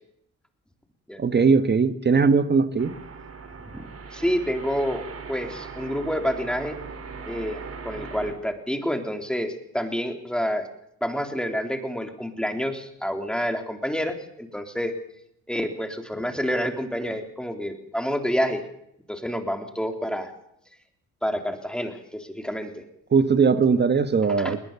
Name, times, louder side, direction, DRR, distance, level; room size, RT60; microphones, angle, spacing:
voice 1, 1.2-2.9 23.1-24.6, right 5 dB, 35° right, 12 dB, 1.4 m, -20 dB
sound 1, 2.8-8.3, right 5 dB, 50° right, 4.1 m, -39 dB
voice 2, 3.7-6.8 7.2-10.7 11.0-14.9 15.5-18.6 19.1-20.3 21.2-22.9 24.4-24.5, equal, 5° left, 5 dB, 3.7 m, -28 dB
20.5 x 19.5 x 7.0 m, 0.75 s
cardioid pair, 90°, 30 cm